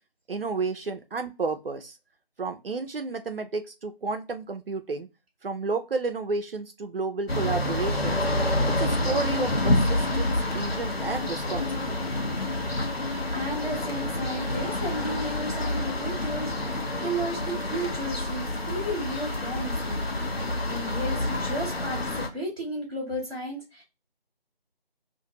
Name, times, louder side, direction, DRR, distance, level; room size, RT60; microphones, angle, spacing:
voice 1, 0.3-2.0 2.4-5.1 5.4-8.2 8.7-12.0, right 4 dB, 70° right, 7 dB, 0.5 m, -31 dB
sound 1, 7.3-22.3, left 1 dB, 80° left, 0.9 m, -28 dB
voice 2, 13.0-20.4 20.7-23.8, right 1 dB, 10° right, -14 dB, 0.9 m, -34 dB
2.5 x 2.4 x 2.8 m, 0.27 s
figure-of-eight pair, 160°, 30 cm